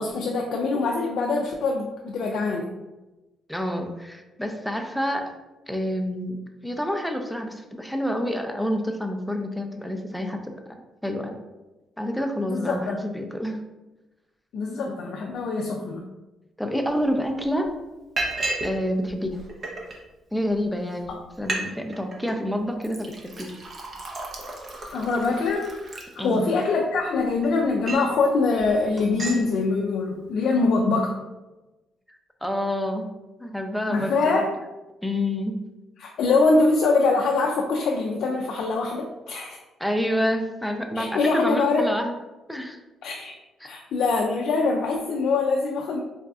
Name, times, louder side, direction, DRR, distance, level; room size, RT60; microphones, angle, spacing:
voice 1, 0.0-2.7 12.4-13.0 14.5-16.1 21.1-21.2 24.9-25.7 26.2-31.2 33.9-34.5 36.0-39.6 40.9-41.9 43.0-43.3 43.6-46.0, left 3 dB, 70° left, 0 dB, 0.3 m, -23 dB
voice 2, 3.5-5.3 5.7-10.5 11.0-11.4 12.0-13.6 14.8-15.0 16.6-17.7 18.6-19.4 20.3-21.1 21.4-23.5 26.2-26.6 32.1-33.1 33.4-34.5 35.0-35.6 39.8-42.1 42.5-42.8 43.6-43.7, equal, ahead, 4 dB, 0.4 m, -28 dB
Liquid, 17.0-17.1 17.4-17.7 18.2-18.8 19.1-20.0 20.6-20.7 21.0-21.1 21.3-21.6 21.9-22.3 22.8-26.6 27.2-28.2 28.6-28.7 29.0-29.4, right 2 dB, 40° right, 0.7 m, -33 dB
4.0 x 2.5 x 2.3 m, 1.1 s
cardioid pair, 90°, 0 cm